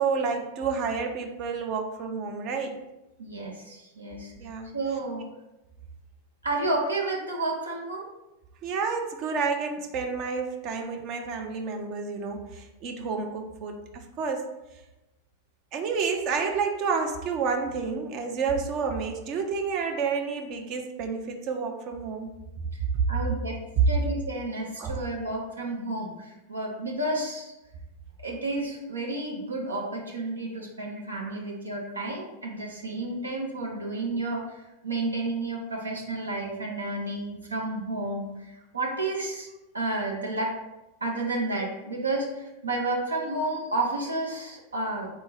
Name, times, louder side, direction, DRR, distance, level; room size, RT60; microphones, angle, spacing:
voice 1, 0.0-2.7 4.4-4.7 8.6-14.5 15.7-22.3 24.8-25.0, right 5 dB, 40° right, 3 dB, 0.5 m, -30 dB
voice 2, 3.2-4.3 4.7-5.2 6.4-8.1 23.1-23.6 23.9-27.5 28.2-40.5 41.0-45.1, right 2 dB, 80° right, -2 dB, 0.7 m, -31 dB
3.8 x 2.7 x 4.3 m, 0.98 s
figure-of-eight pair, 90°, 0 cm